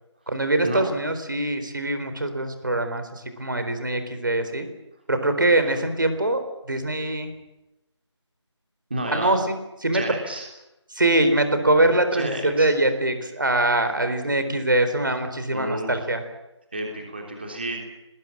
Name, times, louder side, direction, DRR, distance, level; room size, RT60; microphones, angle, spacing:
voice 1, 0.3-4.7 5.1-6.4 6.7-7.3 9.1-9.5 9.8-10.0 10.9-16.2, right 1 dB, 45° right, 8 dB, 4.0 m, -23 dB
voice 2, 8.9-9.3 9.9-10.5 12.1-12.7 15.5-16.1 16.7-17.8, right 1 dB, 20° right, 2 dB, 3.3 m, -31 dB
29.0 x 20.5 x 7.5 m, 0.93 s
figure-of-eight pair, 180°, 15 cm